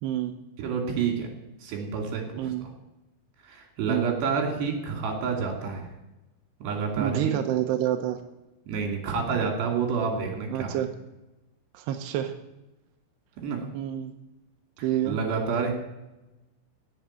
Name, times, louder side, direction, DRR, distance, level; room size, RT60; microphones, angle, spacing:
voice 1, 0.0-0.4 2.4-2.6 3.9-4.1 7.0-8.2 10.5-10.9 11.7-12.3 13.7-14.1 14.8-15.2, right 11 dB, 80° right, 5 dB, 2.6 m, -28 dB
voice 2, 0.6-1.3 1.6-2.5 3.4-5.9 6.6-7.4 8.7-10.8 13.4-13.6 14.8-15.7, right 5 dB, 60° right, 2 dB, 4.6 m, -29 dB
16.5 x 7.5 x 8.9 m, 0.98 s
omnidirectional pair, 5.9 m